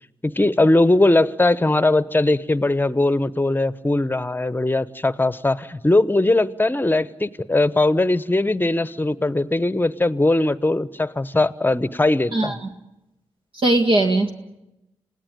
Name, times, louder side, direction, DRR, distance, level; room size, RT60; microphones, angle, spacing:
voice 1, 0.2-12.5, left 2 dB, 20° left, 16 dB, 1.0 m, -20 dB
voice 2, 12.3-12.7 13.5-14.3, right 2 dB, 55° right, 4 dB, 1.9 m, -19 dB
27.0 x 17.5 x 9.2 m, 0.93 s
supercardioid pair, 45°, 11 cm